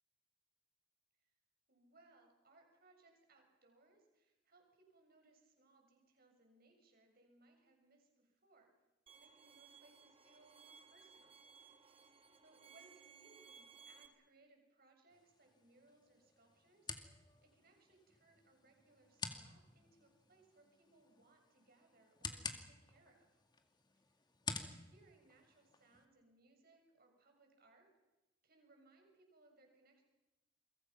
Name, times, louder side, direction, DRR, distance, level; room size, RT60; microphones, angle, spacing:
voice 1, 1.7-8.7 9.2-11.4 12.4-23.3 23.9-24.1 24.6-27.9 28.4-30.0, right 2 dB, 50° right, 3 dB, 6.7 m, -69 dB
Bowed string instrument, 9.1-14.1, right 6 dB, 30° right, 1.9 m, -61 dB
sound 1, 15.1-26.1, left 4 dB, 25° left, 2.1 m, -51 dB
29.0 x 23.5 x 5.9 m, 1.0 s
head